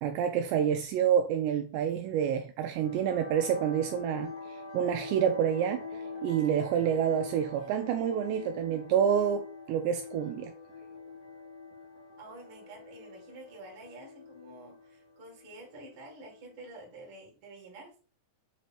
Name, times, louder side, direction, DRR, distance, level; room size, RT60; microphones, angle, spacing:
voice 1, 0.0-5.8 6.2-10.5, right 9 dB, 80° right, 2.6 m, -28 dB
sound 1, 2.7-16.8, left 4 dB, 25° left, 1.1 m, -44 dB
voice 2, 6.8-7.7 12.2-18.0, right 2 dB, 45° right, 1.9 m, -49 dB
8.0 x 3.1 x 4.3 m
omnidirectional pair, 5.4 m